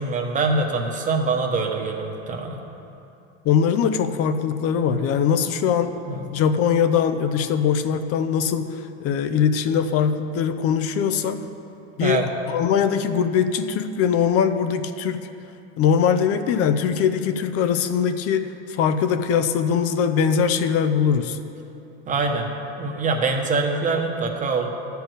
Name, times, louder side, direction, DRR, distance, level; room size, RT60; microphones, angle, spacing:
voice 1, 0.0-2.6 4.9-5.1 6.1-6.2 12.0-12.2 22.1-22.5 22.8-24.7, right 3 dB, 25° right, 2 dB, 1.1 m, -24 dB
voice 2, 3.4-5.9 6.3-11.4 12.0-15.3 15.8-21.4, left 7 dB, 45° left, 9 dB, 0.7 m, -21 dB
12.5 x 4.6 x 8.0 m, 2.8 s
supercardioid pair, 130°, 33 cm